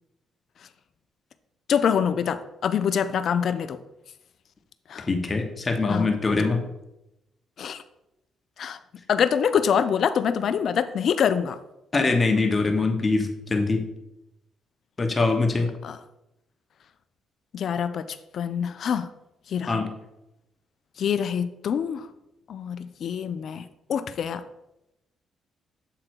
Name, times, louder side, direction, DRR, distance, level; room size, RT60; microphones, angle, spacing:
voice 1, 1.7-3.8 4.9-5.1 5.9-6.1 6.4-6.6 7.6-7.8 8.6-8.8 9.1-11.6 15.8-16.0 17.5-19.1 19.5-19.8 21.0-22.1 22.5-23.6 23.9-24.4, left 7 dB, 60° left, 12 dB, 0.5 m, -25 dB
voice 2, 5.1-6.6 11.9-13.8 15.0-15.7 19.7-19.9, left 3 dB, 30° left, 4 dB, 1.1 m, -23 dB
7.7 x 3.8 x 4.5 m, 0.89 s
cardioid pair, 90°, 0 cm